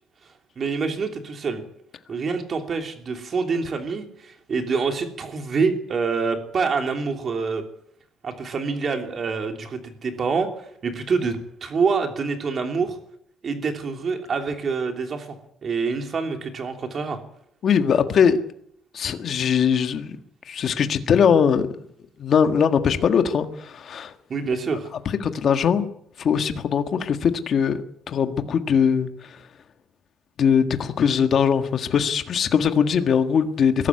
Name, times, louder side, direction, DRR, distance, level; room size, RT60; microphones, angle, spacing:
voice 1, 0.6-1.6 2.1-7.6 8.2-13.0 13.4-15.4 15.6-17.2 24.3-24.9, right 4 dB, 35° right, 5 dB, 3.1 m, -26 dB
voice 2, 17.6-18.4 18.9-20.2 20.5-21.7 22.2-24.1 25.3-25.9 26.2-29.4 30.4-33.9, left 7 dB, 40° left, 8 dB, 1.6 m, -21 dB
22.0 x 12.5 x 9.7 m, 0.71 s
cardioid pair, 160°, 0 cm